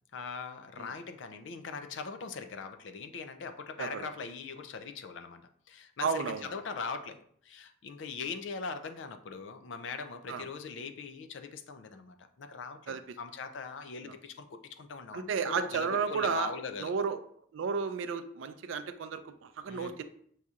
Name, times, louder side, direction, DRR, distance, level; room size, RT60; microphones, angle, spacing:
voice 1, 0.1-16.9 19.7-19.9, left 5 dB, 80° left, 9 dB, 0.4 m, -41 dB
voice 2, 3.8-4.1 6.0-6.4 10.3-10.4 12.9-13.0 14.0-14.1 15.1-16.5 16.8-17.2 17.5-20.0, right 5 dB, 90° right, 10 dB, 0.4 m, -32 dB
6.3 x 2.8 x 2.4 m, 0.63 s
head